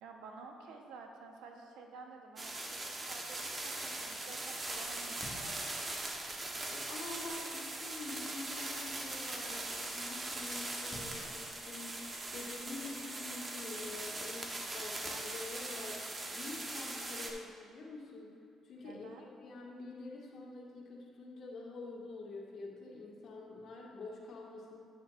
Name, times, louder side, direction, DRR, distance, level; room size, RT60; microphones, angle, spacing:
voice 1, 0.0-2.6 2.9-5.6 18.8-19.3, right 4 dB, 90° right, 2 dB, 1.1 m, -51 dB
sound 1, 2.4-17.3, right 2 dB, 30° right, 1.2 m, -41 dB
Fire, 4.7-7.5 8.7-12.9, left 1 dB, 20° left, 1.7 m, -55 dB
voice 2, 6.7-18.4 18.6-19.1 19.4-24.8, left 3 dB, 65° left, -3 dB, 1.9 m, -47 dB
10.5 x 9.2 x 2.6 m, 2.4 s
cardioid pair, 90°, 0 cm